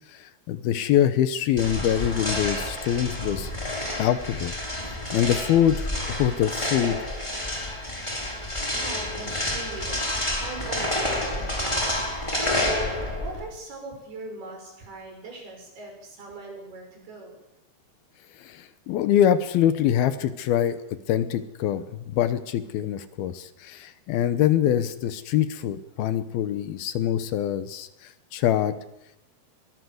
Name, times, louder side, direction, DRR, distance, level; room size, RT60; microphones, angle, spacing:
voice 1, 0.1-4.5 5.1-7.0 18.4-27.9 28.3-28.7, left 10 dB, 75° left, 12 dB, 2.8 m, -24 dB
sound 1, 1.6-13.5, left 1 dB, 5° left, 4.8 m, -29 dB
voice 2, 8.7-12.9 13.2-17.4, right 3 dB, 70° right, 2 dB, 8.1 m, -40 dB
22.5 x 18.5 x 7.9 m, 0.84 s
omnidirectional pair, 4.6 m